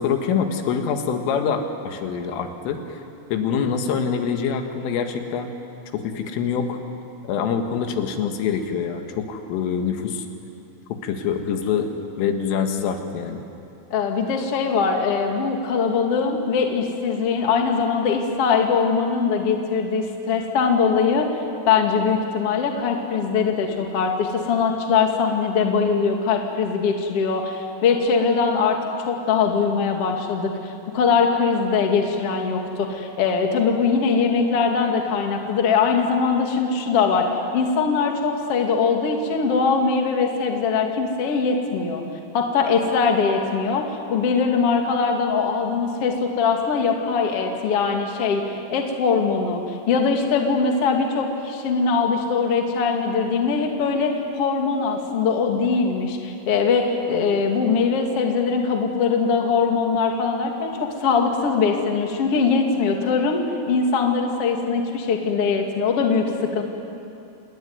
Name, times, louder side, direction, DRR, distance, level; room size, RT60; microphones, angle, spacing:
voice 1, 0.0-3.0 3.3-5.5 5.9-6.8 7.3-10.3 10.9-13.4, left 6 dB, 75° left, 5 dB, 4.1 m, -25 dB
voice 2, 13.9-21.3 21.7-28.8 29.1-37.3 37.5-42.0 42.3-43.8 44.1-66.6, left 5 dB, 45° left, 2 dB, 2.2 m, -21 dB
28.0 x 20.5 x 9.6 m, 2.7 s
omnidirectional pair, 5.9 m